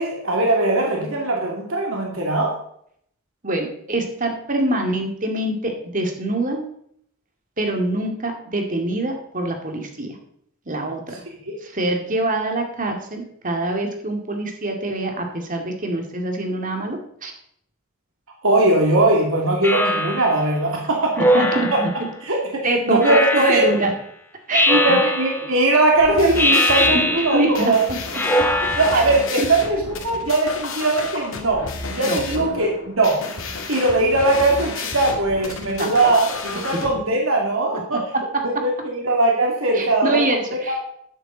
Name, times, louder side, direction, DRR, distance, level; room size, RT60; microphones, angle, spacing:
voice 1, 0.0-2.6 11.5-11.6 18.4-21.1 22.2-22.4 22.8-23.6 24.7-27.8 28.8-31.7 31.9-33.2 33.7-38.0 38.4-40.2 40.7-40.8, right 2 dB, 75° right, -1 dB, 2.4 m, -20 dB
voice 2, 3.4-6.6 7.6-10.2 10.7-11.1 11.6-17.3 21.2-21.9 22.6-23.9 24.5-25.0 26.9-27.0 27.3-28.0 28.4-28.5 28.9-29.0 29.4-29.5 32.0-32.2 35.8-36.1 36.5-36.8 38.1-38.6 39.7-40.8, right 2 dB, 40° right, 3 dB, 2.2 m, -24 dB
Speech synthesizer, 19.6-20.4 21.2-22.0 23.0-23.8 24.5-25.5 26.3-27.6 28.1-29.2, left 1 dB, 10° left, 1.5 m, -21 dB
sound 1, 25.9-36.9, left 3 dB, 70° left, 2.2 m, -31 dB
12.0 x 10.5 x 3.9 m, 0.67 s
head